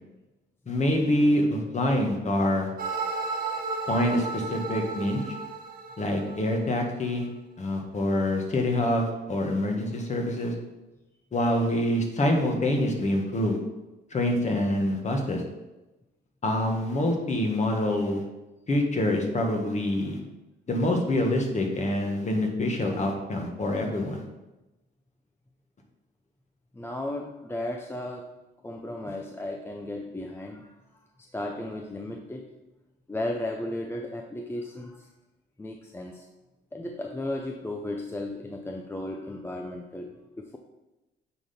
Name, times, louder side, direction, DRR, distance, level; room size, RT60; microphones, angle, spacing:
voice 1, 0.7-2.7 3.9-5.3 6.0-7.3 7.6-10.5 11.3-13.6 14.1-15.4 16.4-18.2 18.7-20.2 20.7-24.2, left 1 dB, 35° left, 2 dB, 1.5 m, -26 dB
sound 1, 2.8-6.8, right 4 dB, 45° right, 1.3 m, -33 dB
voice 2, 26.7-28.3 28.6-30.7 31.2-32.5 33.1-35.1 35.6-36.3 36.7-40.6, left 1 dB, 10° left, 2 dB, 0.6 m, -35 dB
9.0 x 3.9 x 4.3 m, 1.0 s
cardioid pair, 90°, 20 cm